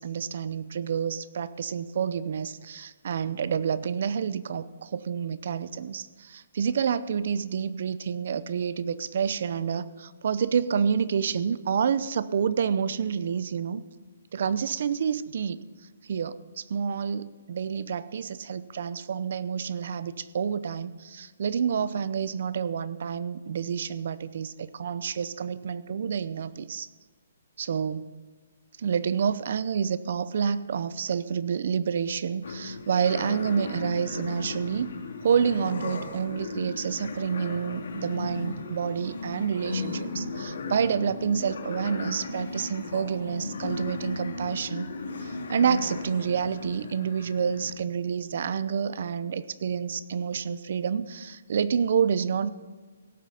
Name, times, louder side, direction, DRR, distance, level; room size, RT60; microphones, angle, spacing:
voice 1, 0.0-13.8 14.3-15.6 16.1-26.9 27.6-28.1 28.8-35.0 35.2-44.9 45.2-52.5, right 7 dB, 55° right, 16 dB, 0.6 m, -28 dB
sound 1, 32.4-47.7, left 3 dB, 75° left, 2.5 m, -36 dB
17.5 x 7.6 x 5.6 m, 1.3 s
hypercardioid pair, 165°, 0 cm